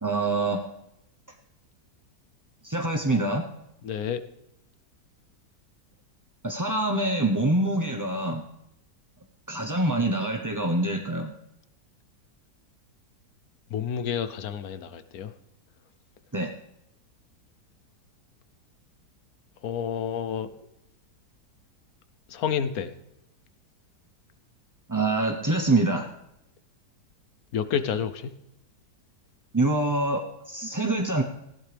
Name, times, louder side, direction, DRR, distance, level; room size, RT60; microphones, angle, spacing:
voice 1, 0.0-0.6 2.6-3.5 6.4-8.4 9.5-11.3 16.3-16.5 24.9-26.1 29.5-31.2, right 2 dB, 20° right, 1 dB, 0.6 m, -25 dB
voice 2, 3.8-4.2 13.7-15.3 19.6-20.5 22.3-22.9 27.5-28.3, left 8 dB, 65° left, 12 dB, 1.2 m, -29 dB
19.0 x 15.0 x 3.4 m, 0.85 s
omnidirectional pair, 1.8 m